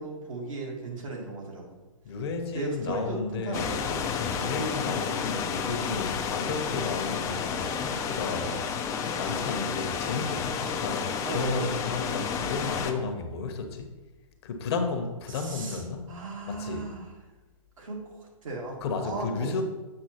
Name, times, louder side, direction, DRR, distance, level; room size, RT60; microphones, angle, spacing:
voice 1, 0.0-1.8 2.5-3.8 4.3-4.5 8.4-8.6 10.6-10.9 11.2-11.7 12.9-13.1 15.3-15.8 16.1-17.1 17.8-19.6, right 2 dB, 65° right, -2 dB, 2.2 m, -36 dB
voice 2, 2.0-3.7 4.1-8.9 9.2-13.9 14.4-16.1 16.5-16.9 18.8-19.6, left 4 dB, 50° left, 6 dB, 0.9 m, -33 dB
sound 1, 3.5-12.9, left 6 dB, 15° left, 0.5 m, -31 dB
7.7 x 6.1 x 2.9 m, 1.1 s
figure-of-eight pair, 125°, 18 cm